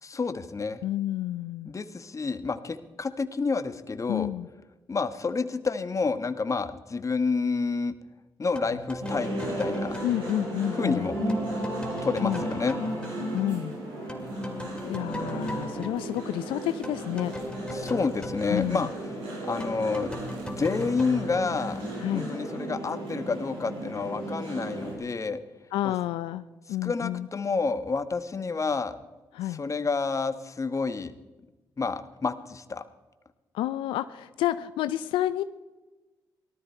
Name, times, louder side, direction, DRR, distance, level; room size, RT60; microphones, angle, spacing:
voice 1, 0.0-0.8 1.6-4.3 4.9-7.9 8.4-10.0 10.8-11.2 12.0-12.8 17.7-18.9 19.4-20.1 20.5-21.8 22.1-25.4 25.8-25.9 26.8-28.9 29.5-31.1 31.8-32.8, left 4 dB, 40° left, 11 dB, 1.2 m, -29 dB
voice 2, 0.8-1.7 4.1-4.5 10.0-11.1 12.2-12.4 13.3-13.7 14.8-17.3 18.5-18.9 22.0-22.3 25.7-27.3 29.3-29.6 33.5-35.4, left 13 dB, 85° left, 12 dB, 0.4 m, -30 dB
sound 1, 8.5-13.8 14.1-22.3, left 1 dB, 10° left, 2.4 m, -40 dB
sound 2, 9.0-25.0, right 1 dB, 85° right, 6.3 m, -34 dB
18.5 x 13.0 x 4.5 m, 1.1 s
supercardioid pair, 55°, 8 cm